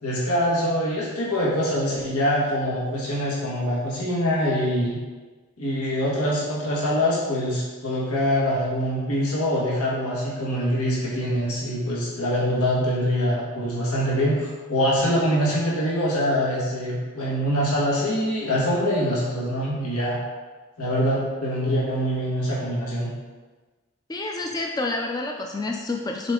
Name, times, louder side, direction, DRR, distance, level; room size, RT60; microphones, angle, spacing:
voice 1, 0.0-5.0 5.6-20.2 20.8-23.1, equal, 85° left, -5 dB, 1.5 m, -24 dB
voice 2, 24.1-26.3, left 2 dB, 20° left, 2 dB, 0.3 m, -28 dB
7.1 x 4.1 x 3.7 m, 1.3 s
head